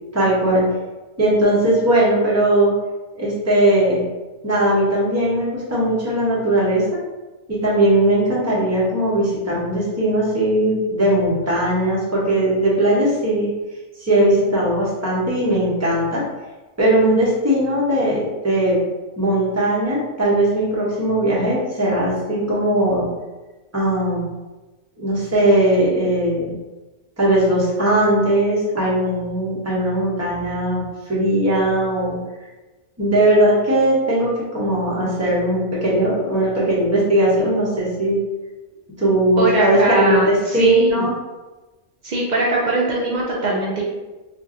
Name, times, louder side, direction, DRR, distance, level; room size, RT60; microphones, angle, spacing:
voice 1, 0.1-0.6 1.2-2.7 3.1-4.0 4.4-7.0 7.5-13.5 14.0-16.2 16.8-18.8 19.2-23.1 23.7-24.3 25.0-26.5 27.2-32.2 33.0-38.2 39.0-41.1, right 1 dB, 15° right, -7 dB, 0.7 m, -19 dB
voice 2, 39.4-41.1 42.0-43.8, right 2 dB, 90° right, -4 dB, 0.4 m, -21 dB
2.6 x 2.2 x 3.7 m, 1.2 s
omnidirectional pair, 1.4 m